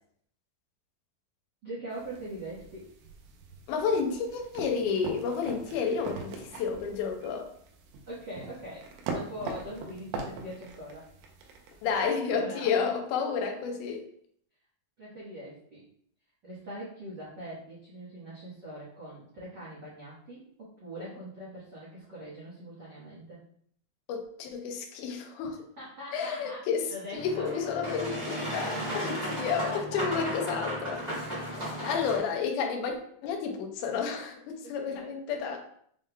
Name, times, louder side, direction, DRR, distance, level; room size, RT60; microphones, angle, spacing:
voice 1, 1.6-2.9 8.1-11.1 11.9-12.7 15.0-15.8 16.4-23.4 25.8-26.6 26.9-27.5 28.7-30.0 31.8-32.0 34.6-35.1, right 1 dB, 70° right, -8 dB, 1.0 m, -42 dB
sound 1, 1.9-12.1, right 4 dB, 85° right, 2.5 m, -42 dB
voice 2, 3.7-7.5 11.8-14.0 24.1-25.6 26.1-31.5 31.8-33.0 33.2-35.6, left 6 dB, 75° left, 3 dB, 2.0 m, -31 dB
Boat Water vehicle, 27.1-32.2, equal, 35° right, 0.6 m, -35 dB
6.4 x 3.4 x 2.2 m, 0.65 s
omnidirectional pair, 4.1 m